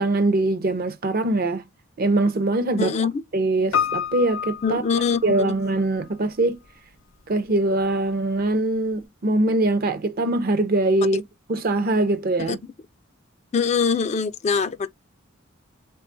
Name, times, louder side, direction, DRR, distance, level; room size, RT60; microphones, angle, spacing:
voice 1, 0.0-1.6 2.0-2.9 3.3-4.8 5.2-6.6 7.3-11.2 11.5-12.6, right 2 dB, 45° right, 0.5 m, -22 dB
voice 2, 2.8-3.2 4.6-5.5 12.5-12.6 13.5-14.9, left 5 dB, 30° left, 0.3 m, -23 dB
Piano, 3.7-5.8 6.0-6.1, left 8 dB, 65° left, 0.7 m, -28 dB
3.5 x 2.3 x 2.5 m
head